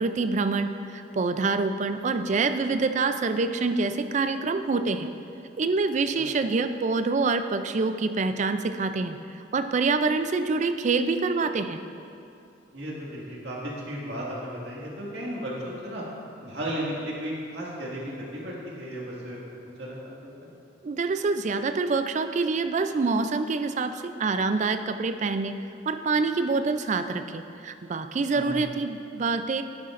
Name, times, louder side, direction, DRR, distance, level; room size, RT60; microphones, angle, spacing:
voice 1, 0.0-5.1 5.6-9.2 9.5-11.8 20.8-25.6 25.9-29.6, right 4 dB, 40° right, 9 dB, 0.4 m, -26 dB
voice 2, 12.7-16.0 16.4-20.5 28.3-28.5, equal, 65° right, -5 dB, 2.0 m, -35 dB
11.0 x 9.7 x 2.5 m, 2.6 s
head